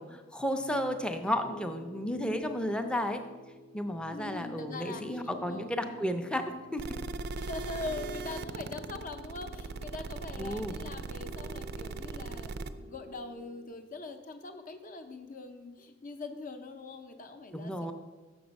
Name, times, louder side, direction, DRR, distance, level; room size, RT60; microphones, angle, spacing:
voice 1, 0.0-3.2 3.7-7.0 10.4-10.8 17.5-17.9, equal, 5° left, 6 dB, 0.5 m, -33 dB
Piano, 0.6-13.7, left 2 dB, 90° left, 0.6 m, -50 dB
voice 2, 4.1-5.0 5.5-5.9 7.4-17.9, left 3 dB, 45° left, 7 dB, 0.7 m, -42 dB
sound 1, 6.8-12.7, right 4 dB, 55° right, 0.4 m, -39 dB
7.0 x 6.3 x 5.2 m, 1.3 s
head